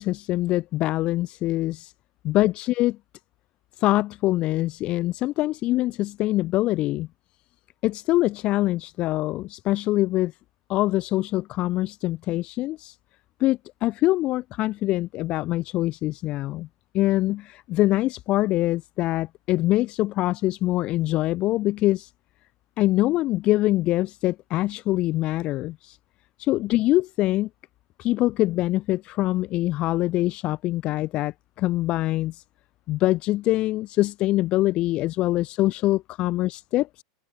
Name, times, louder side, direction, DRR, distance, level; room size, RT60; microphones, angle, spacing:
voice 1, 0.0-1.9 2.2-3.0 3.8-7.1 7.8-10.3 10.7-13.0 13.4-16.7 16.9-22.1 22.8-26.0 26.4-27.5 28.0-32.4 32.9-37.0, left 16 dB, 45° left, 0.4 m, -24 dB
hypercardioid pair, 105°, 2 cm